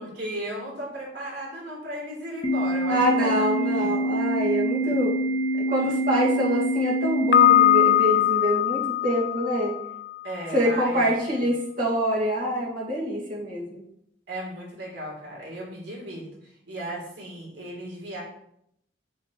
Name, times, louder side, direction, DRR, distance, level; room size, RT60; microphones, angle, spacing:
voice 1, 0.0-3.9 5.8-5.9 10.2-11.1 14.3-16.2 16.7-18.2, right 1 dB, 80° right, -3 dB, 3.4 m, -35 dB
Organ, 2.4-8.4, right 1 dB, 25° left, 1.0 m, -26 dB
voice 2, 2.9-5.2 5.7-9.7 10.5-13.8, equal, 50° right, -4 dB, 2.3 m, -25 dB
Piano, 7.3-10.2, left 14 dB, 70° left, 0.5 m, -21 dB
7.9 x 7.1 x 3.2 m, 0.74 s
head